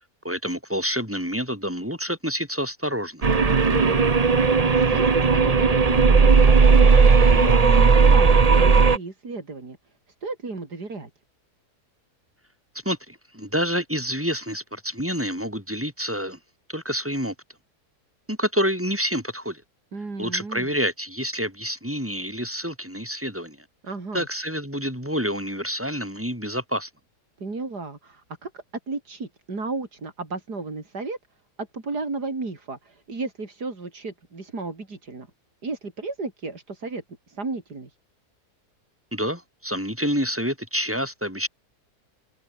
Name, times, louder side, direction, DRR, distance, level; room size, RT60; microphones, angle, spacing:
voice 1, 0.2-3.3 12.9-16.4 16.7-17.3 18.3-19.6 20.2-23.6 24.1-26.9 39.1-41.5, equal, 5° right, 6.9 m, -28 dB
sound 1, 3.2-9.0, right 4 dB, 30° right, 0.9 m, -16 dB
voice 2, 3.4-4.0 4.3-7.0 7.3-9.8 10.2-11.1 19.9-20.7 23.8-24.3 27.4-31.2 31.6-35.3 35.6-37.9, right 3 dB, 80° right, 4.7 m, -33 dB
omnidirectional pair, 1.7 m